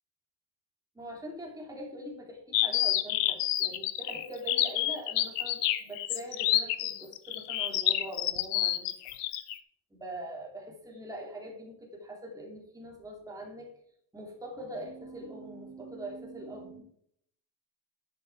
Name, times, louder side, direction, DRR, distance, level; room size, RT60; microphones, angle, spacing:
voice 1, 0.9-8.9 9.9-13.7 14.1-16.8, right 1 dB, 5° right, -1 dB, 2.9 m, -43 dB
sound 1, 2.5-9.6, left 14 dB, 65° left, 1.0 m, -28 dB
10.5 x 6.4 x 4.7 m, 0.68 s
cardioid pair, 140°, 46 cm